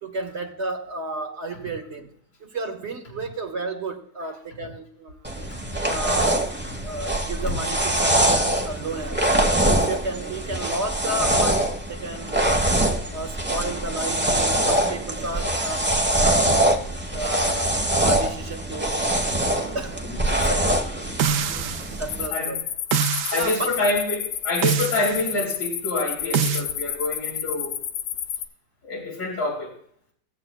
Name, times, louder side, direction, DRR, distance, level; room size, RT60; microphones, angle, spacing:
voice 1, 0.0-2.1 2.4-5.2 5.9-6.5 6.8-9.3 9.6-12.6 13.1-16.5 17.1-19.2 19.7-20.8 21.8-22.6 23.3-23.7, right 2 dB, 45° right, 1.1 m, -32 dB
sound 1, 5.2-22.3, right 1 dB, 10° right, 0.7 m, -23 dB
sound 2, 21.2-22.0 22.9-23.6 24.6-25.2 26.3-26.7, right 7 dB, 80° right, 0.7 m, -24 dB
sound 3, 22.1-28.5, left 9 dB, 70° left, 1.2 m, -30 dB
voice 2, 23.3-27.8 28.8-29.7, left 2 dB, 50° left, 3.5 m, -27 dB
17.5 x 7.6 x 2.2 m
omnidirectional pair, 2.0 m